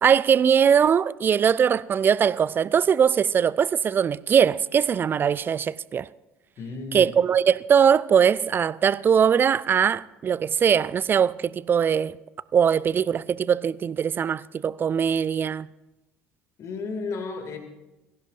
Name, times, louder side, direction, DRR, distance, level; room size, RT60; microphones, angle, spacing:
voice 1, 0.0-6.1 6.9-12.2 12.5-15.7, right 7 dB, 30° right, 0.4 m, -21 dB
voice 2, 6.6-7.2 16.6-17.6, left 4 dB, 45° left, 2.5 m, -33 dB
20.5 x 16.0 x 2.6 m
figure-of-eight pair, 60°, 7 cm